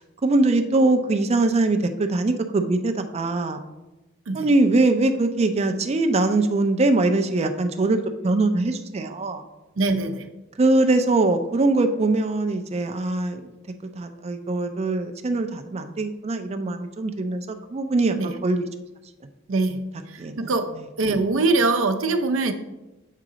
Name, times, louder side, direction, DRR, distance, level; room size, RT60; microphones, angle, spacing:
voice 1, 0.0-3.6 4.3-8.0 8.2-9.4 10.6-13.5 14.0-18.7 20.2-20.5, right 2 dB, 30° right, 7 dB, 0.4 m, -22 dB
voice 2, 9.8-10.3 18.2-18.3 19.5-19.8 20.1-20.7 21.0-22.5, right 3 dB, 85° right, 6 dB, 0.6 m, -23 dB
7.4 x 3.8 x 4.9 m, 1.0 s
head